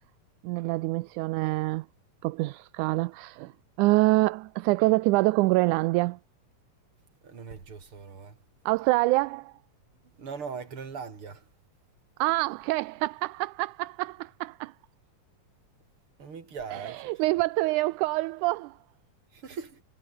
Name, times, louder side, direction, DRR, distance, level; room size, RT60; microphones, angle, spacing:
voice 1, 0.4-1.9 2.2-3.5 3.8-6.2 8.7-9.5 12.2-14.7 16.7-18.8, right 21 dB, 80° right, 1.9 m, -26 dB
voice 2, 7.2-8.4 10.2-11.4 16.2-17.2 19.3-19.8, right 5 dB, 40° right, 4.0 m, -40 dB
omnidirectional pair, 3.8 m